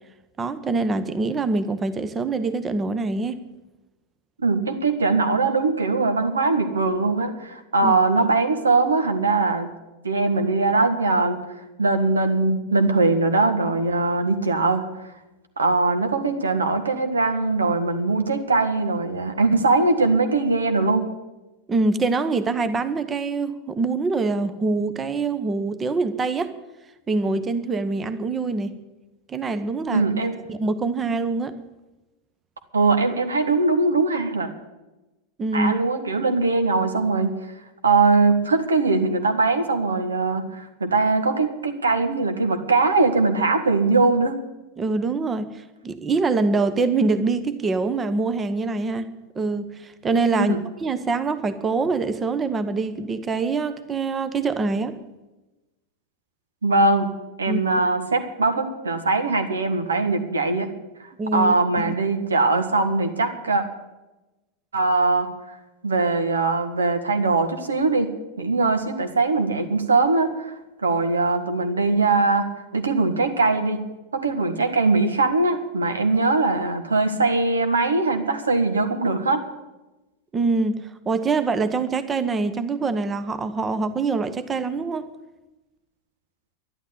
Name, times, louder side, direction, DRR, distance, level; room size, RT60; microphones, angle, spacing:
voice 1, 0.4-3.4 7.8-7.9 21.7-26.5 27.1-28.8 29.3-30.1 30.5-31.6 35.4-35.8 44.8-55.0 57.5-57.6 61.2-61.9 80.3-85.1, right 3 dB, 20° right, 12 dB, 1.0 m, -24 dB
voice 2, 4.4-9.7 10.0-11.4 11.8-14.8 15.6-21.1 29.9-30.3 32.7-34.5 35.5-37.3 37.8-44.4 50.3-50.6 56.6-57.1 57.4-60.7 61.3-63.6 64.7-65.3 65.8-68.1 68.4-70.5 70.8-72.5 72.7-73.8 74.1-79.4, right 3 dB, 75° right, 7 dB, 1.8 m, -21 dB
12.0 x 11.5 x 8.3 m, 1.0 s
figure-of-eight pair, 90°, 0 cm